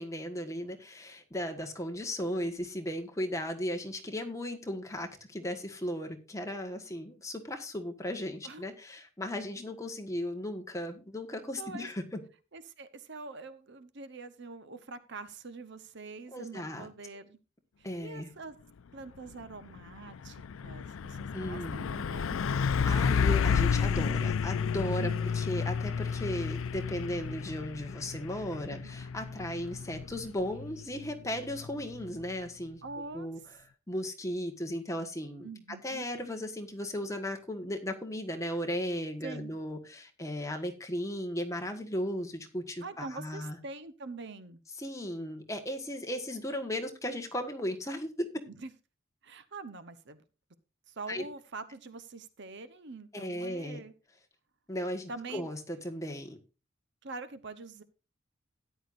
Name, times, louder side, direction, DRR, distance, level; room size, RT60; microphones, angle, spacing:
voice 1, 0.0-12.2 16.3-16.9 17.8-18.3 21.3-21.9 22.5-32.8 33.1-33.4 33.9-35.5 35.8-43.6 44.8-48.3 51.1-51.2 53.1-53.8 54.7-56.4, left 1 dB, 15° left, 5 dB, 1.5 m, -36 dB
voice 2, 11.6-11.9 12.5-17.4 17.8-18.5 18.9-22.5 24.9-25.3 28.5-28.9 32.8-33.3 35.4-36.1 39.2-39.5 42.8-44.6 48.5-48.7 49.2-50.2 50.9-53.9 55.1-55.5 57.0-57.8, right 3 dB, 60° right, 12 dB, 0.9 m, -44 dB
Truck, 19.2-19.4 19.8-32.3, left 6 dB, 75° left, 0.4 m, -31 dB
13.5 x 10.0 x 2.6 m, 0.32 s
head